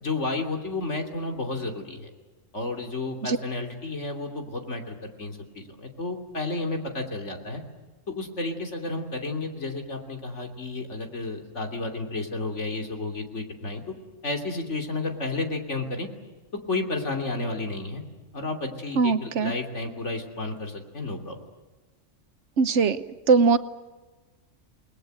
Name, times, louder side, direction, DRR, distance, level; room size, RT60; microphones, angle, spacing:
voice 1, 0.0-2.1 2.5-7.6 8.1-14.0 14.2-16.1 16.7-18.0 18.3-21.4, left 2 dB, 75° left, 3 dB, 3.3 m, -32 dB
voice 2, 19.0-19.5 22.6-23.6, right 4 dB, 70° right, 12 dB, 1.3 m, -21 dB
29.5 x 20.5 x 7.8 m, 1.2 s
omnidirectional pair, 1.2 m